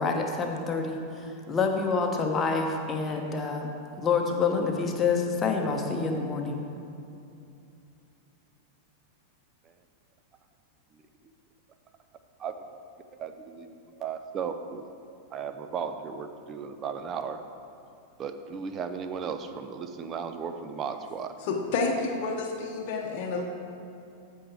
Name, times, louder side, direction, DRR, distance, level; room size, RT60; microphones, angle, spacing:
voice 1, 0.0-3.7 4.0-6.6, left 4 dB, 20° left, 2 dB, 1.1 m, -27 dB
voice 2, 13.2-14.8 15.3-17.4 18.2-21.3, right 6 dB, 30° right, 8 dB, 0.6 m, -35 dB
voice 3, 21.4-23.4, left 3 dB, 45° left, 1 dB, 0.9 m, -29 dB
14.5 x 5.5 x 3.5 m, 2.6 s
figure-of-eight pair, 90°, 0 cm